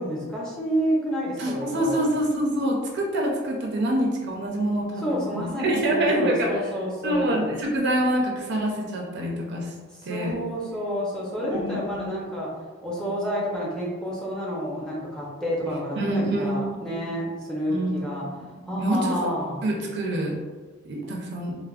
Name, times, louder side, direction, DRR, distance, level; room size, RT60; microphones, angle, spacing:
voice 1, 0.0-2.1 5.0-7.5 10.1-12.5 12.8-18.2 18.7-19.6, equal, 5° left, -6 dB, 0.6 m, -29 dB
voice 2, 1.4-6.6 7.0-9.7 10.0-10.5 11.5-12.1 16.0-17.1 17.7-19.3 19.6-20.4 20.8-21.6, right 1 dB, 60° right, -1 dB, 0.5 m, -26 dB
3.3 x 2.0 x 2.3 m, 1.4 s
head